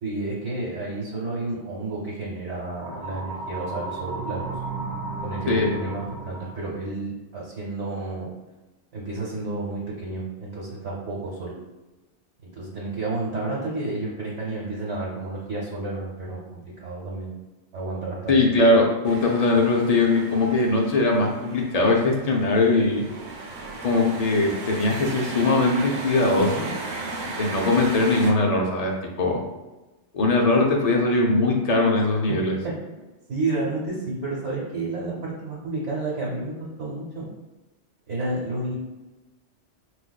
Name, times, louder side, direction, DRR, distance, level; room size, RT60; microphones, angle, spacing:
voice 1, 0.0-4.5 5.2-8.3 8.9-11.5 12.4-17.4 17.7-18.7 32.6-32.7 33.3-37.3 38.1-38.7, right 2 dB, 90° right, -5 dB, 1.2 m, -31 dB
sound 1, 2.7-6.7, right 3 dB, 25° right, 0.4 m, -34 dB
voice 2, 18.3-23.1 23.8-26.7 27.4-28.9 29.2-29.4 30.1-32.5, left 2 dB, 60° left, 0 dB, 0.4 m, -20 dB
sound 2, 19.0-28.3, right 2 dB, 70° right, 0.9 m, -36 dB
4.5 x 2.4 x 2.2 m, 1.1 s
omnidirectional pair, 1.2 m